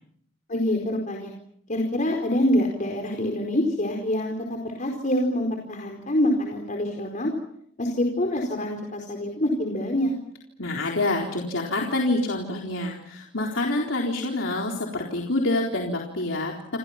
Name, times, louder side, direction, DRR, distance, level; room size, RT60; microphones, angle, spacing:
voice 1, 0.5-1.3 1.7-7.3 7.8-10.1, left 1 dB, 40° left, 1 dB, 4.5 m, -25 dB
voice 2, 10.6-16.5, left 2 dB, 70° left, -1 dB, 4.1 m, -27 dB
28.5 x 28.5 x 5.9 m, 0.69 s
head